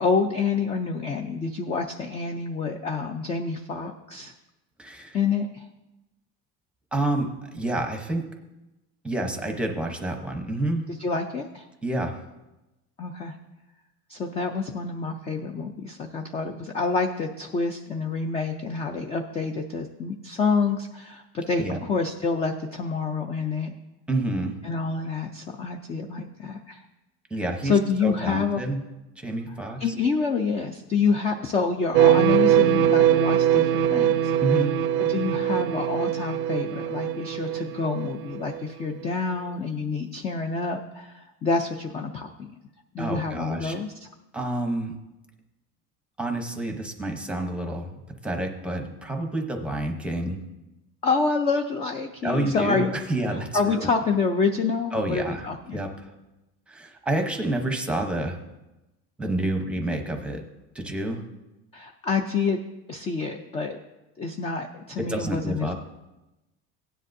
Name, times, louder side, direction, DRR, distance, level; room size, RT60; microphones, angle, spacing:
voice 1, 0.0-4.3 5.1-5.7 11.0-11.7 13.0-13.4 14.1-23.7 24.6-26.8 27.6-28.6 29.8-34.3 35.0-42.5 42.9-44.1 51.0-52.9 53.5-55.8 61.7-62.6 62.9-63.8 64.2-65.7, left 4 dB, 20° left, 4 dB, 0.3 m, -27 dB
voice 2, 4.8-5.2 6.9-8.3 9.0-10.9 11.8-12.2 21.6-21.8 24.1-24.6 27.3-28.8 29.2-29.8 34.4-34.8 43.0-43.8 44.3-44.9 46.2-50.4 52.2-53.9 54.9-55.4 55.7-56.1 56.7-58.4 59.2-60.4 60.7-61.2 65.0-65.7, right 1 dB, 5° right, 4 dB, 0.8 m, -28 dB
sound 1, 31.9-38.6, right 10 dB, 65° right, 0.5 m, -22 dB
16.5 x 10.0 x 2.6 m, 1.0 s
cardioid pair, 180°, 33 cm